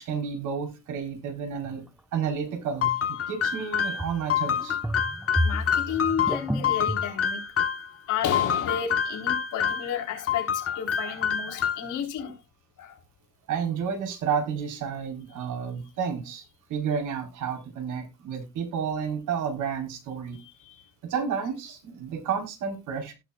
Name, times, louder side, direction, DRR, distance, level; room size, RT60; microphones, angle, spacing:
voice 1, 0.0-1.8 2.1-4.8 13.5-20.4 21.0-23.1, right 7 dB, 85° right, 2 dB, 4.4 m, -31 dB
sound 1, 1.6-1.8 4.0-4.3 4.6-7.1, equal, 5° right, 0.6 m, -30 dB
sound 2, 2.8-7.9 8.3-9.9 10.3-12.0, left 8 dB, 50° left, 1.4 m, -27 dB
voice 2, 5.4-7.4 8.1-12.3 12.8-13.0 20.6-20.9, left 8 dB, 85° left, 2 dB, 4.0 m, -32 dB
17.0 x 6.2 x 2.4 m, 0.25 s
cardioid pair, 90°, 30 cm